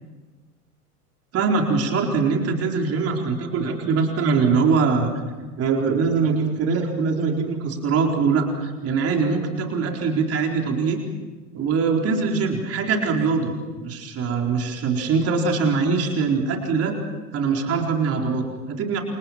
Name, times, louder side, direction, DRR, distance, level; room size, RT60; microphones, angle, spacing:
voice 1, 1.3-5.1 5.6-11.0 11.5-17.0 17.3-19.0, right 4 dB, 30° right, 1 dB, 4.4 m, -22 dB
29.0 x 27.5 x 6.0 m, 1.3 s
figure-of-eight pair, 90°, 46 cm